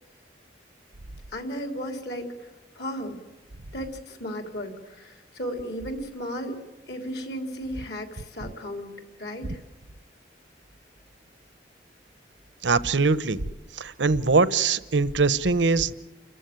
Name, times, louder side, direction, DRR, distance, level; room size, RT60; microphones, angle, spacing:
voice 1, 1.3-2.5 2.8-3.2 3.7-6.6 6.9-8.9 9.2-9.6, equal, 60° left, 6 dB, 3.6 m, -34 dB
voice 2, 12.6-13.4 13.7-15.9, right 4 dB, 85° right, 17 dB, 1.0 m, -22 dB
30.0 x 14.5 x 9.3 m, 1.2 s
head